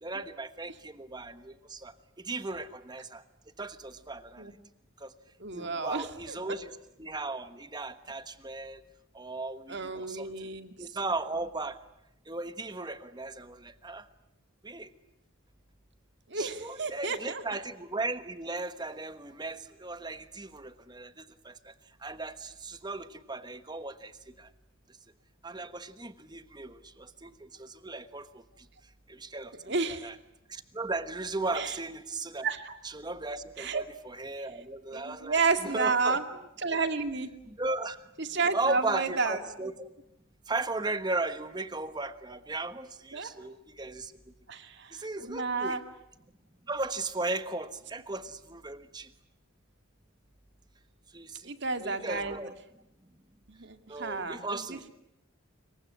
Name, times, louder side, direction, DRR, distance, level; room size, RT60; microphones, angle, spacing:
voice 1, 0.0-3.2 3.6-4.5 5.0-5.1 5.5-6.7 7.0-8.8 9.1-10.3 10.8-11.8 12.3-14.0 14.6-14.9 16.3-21.7 22.0-24.1 24.4-24.5 25.4-28.4 29.1-30.1 30.5-32.5 32.8-36.2 37.4-38.0 38.5-39.9 40.5-44.1 44.9-45.8 46.7-49.1 51.1-51.5 51.8-52.5 53.9-54.9, right 2 dB, 20° right, 11 dB, 1.2 m, -36 dB
voice 2, 5.4-6.4 9.7-10.7 16.3-17.4 29.7-30.1 31.5-31.7 32.4-32.8 33.6-33.8 34.9-36.2 36.6-37.3 38.2-39.4 43.1-43.3 44.5-44.9 45.2-45.8 51.4-52.4 53.5-54.9, right 4 dB, 55° right, 8 dB, 2.2 m, -31 dB
26.0 x 23.0 x 9.9 m, 0.82 s
head